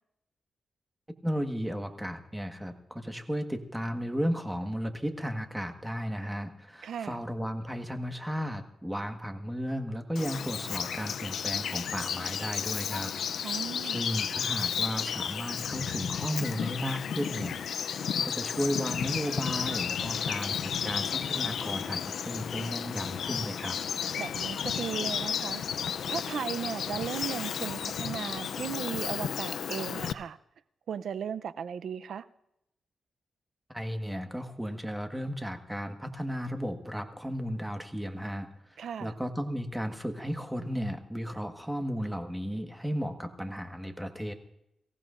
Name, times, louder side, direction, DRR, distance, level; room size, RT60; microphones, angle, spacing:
voice 1, 1.2-13.5 13.8-17.7 18.2-23.8 33.7-44.3, equal, 5° right, 1.4 m, -34 dB
voice 2, 6.8-7.2 13.4-14.0 24.2-25.6 26.1-30.4 30.9-32.3 38.8-39.1, right 8 dB, 80° right, 0.6 m, -36 dB
Bird vocalization bird call bird song, 10.2-30.1, left 8 dB, 80° left, 0.5 m, -33 dB
24.5 x 15.5 x 2.5 m
cardioid pair, 85°, 0 cm